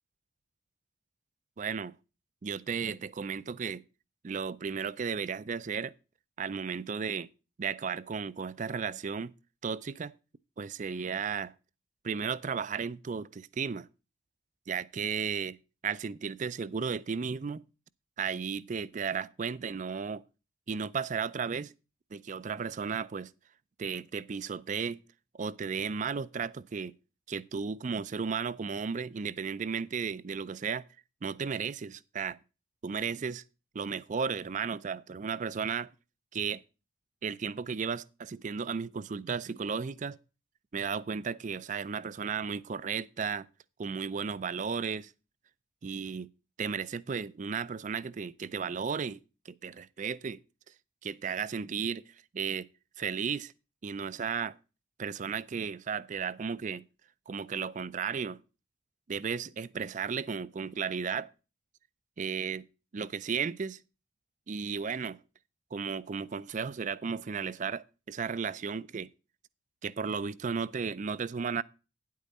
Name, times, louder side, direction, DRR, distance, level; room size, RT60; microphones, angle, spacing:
voice 1, 1.6-1.9 2.4-3.8 4.2-6.0 6.4-7.3 7.6-9.3 9.6-10.1 10.6-11.5 12.0-13.9 14.7-15.6 15.8-17.6 18.2-20.2 20.7-21.7 22.1-23.3 23.8-25.0 25.3-26.9 27.3-30.8 31.2-32.4 32.8-33.4 33.7-35.9 36.3-36.6 37.2-40.2 40.7-43.5 43.8-45.1 45.8-46.3 46.6-49.2 49.5-50.4 51.0-52.0 52.3-52.7 53.0-53.5 53.8-54.6 55.0-56.8 57.3-58.4 59.1-61.3 62.2-62.6 62.9-63.8 64.5-65.2 65.7-69.1 69.8-71.6, right 6 dB, 40° right, 0.4 m, -34 dB
10.0 x 8.4 x 4.1 m
head